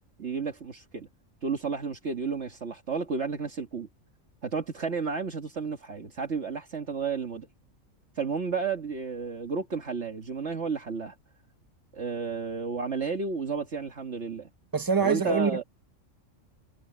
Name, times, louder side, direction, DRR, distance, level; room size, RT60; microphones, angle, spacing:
voice 1, 0.2-1.1 1.4-3.9 4.4-7.5 8.2-11.2 11.9-14.5 15.0-15.6, right 5 dB, 60° right, 1.9 m, -32 dB
voice 2, 14.7-15.6, right 5 dB, 20° right, 1.0 m, -25 dB
omnidirectional pair, 1.3 m